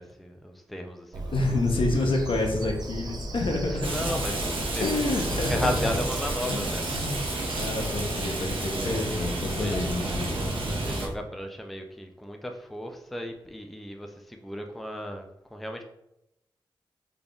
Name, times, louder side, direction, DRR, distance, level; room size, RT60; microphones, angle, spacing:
voice 1, 0.0-1.6 3.7-7.4 8.8-9.8 10.8-15.8, left 1 dB, ahead, 3 dB, 0.4 m, -36 dB
Bird vocalization bird call bird song, 1.1-11.2, right 1 dB, 50° right, 0.6 m, -35 dB
voice 2, 1.3-3.9 4.8-5.9 6.4-7.2 7.5-10.4, left 2 dB, 70° left, 2 dB, 0.7 m, -28 dB
Rain, 3.8-11.1, right 2 dB, 75° right, 0.8 m, -31 dB
3.7 x 3.4 x 2.3 m, 0.85 s
wide cardioid pair, 80°, 9 cm